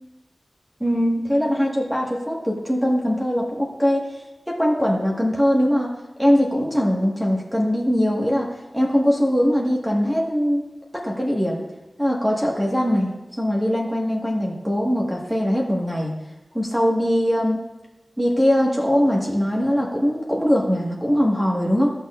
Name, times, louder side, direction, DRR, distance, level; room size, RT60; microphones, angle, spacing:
voice 1, 0.8-4.1 4.5-5.9 6.2-10.6 10.9-11.6 12.0-13.1 13.4-16.1 16.5-17.6 18.2-21.9, equal, 10° right, -2 dB, 1.6 m, -21 dB
14.0 x 6.4 x 2.5 m, 1.1 s
wide cardioid pair, 80°, 0 cm